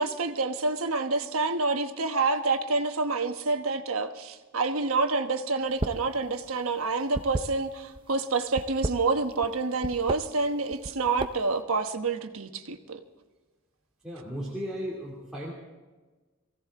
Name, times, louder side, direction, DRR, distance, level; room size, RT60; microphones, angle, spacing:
voice 1, 0.0-13.0, right 3 dB, 90° right, 7 dB, 1.1 m, -28 dB
sound 1, 5.7-6.1 6.4-8.0 8.5-9.5 9.8-10.2 10.7-11.6, right 2 dB, 25° right, 0.5 m, -33 dB
voice 2, 14.0-15.5, equal, 5° right, -6 dB, 2.7 m, -35 dB
23.5 x 16.0 x 3.7 m, 1.3 s
head